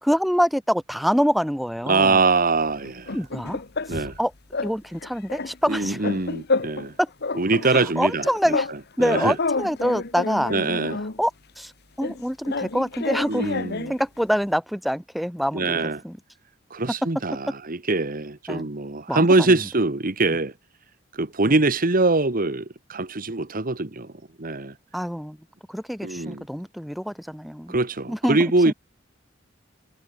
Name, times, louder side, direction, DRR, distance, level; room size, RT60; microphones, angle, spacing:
voice 1, 0.0-2.2 3.1-3.6 3.9-4.3 4.6-6.0 7.0-7.1 7.6-8.7 9.0-10.5 11.2-11.3 11.6-11.7 12.0-13.6 13.9-16.2 18.5-18.7 19.1-19.6 20.3-20.4 21.4-21.5 24.9-25.4 25.7-27.8 28.1-28.7, equal, ahead, 3.1 m, -25 dB
voice 2, 1.9-3.2 3.9-4.1 5.7-6.9 7.4-8.2 9.0-9.3 10.5-11.0 13.3-13.9 15.5-16.0 16.7-20.5 21.1-24.1 24.4-24.7 26.0-26.4 27.7-28.7, right 3 dB, 45° right, 1.6 m, -23 dB
sound 1, 2.8-4.2 4.5-4.8 5.0-6.9 7.2-8.8 9.0-11.2 12.0-14.0, left 3 dB, 55° left, 1.4 m, -29 dB
head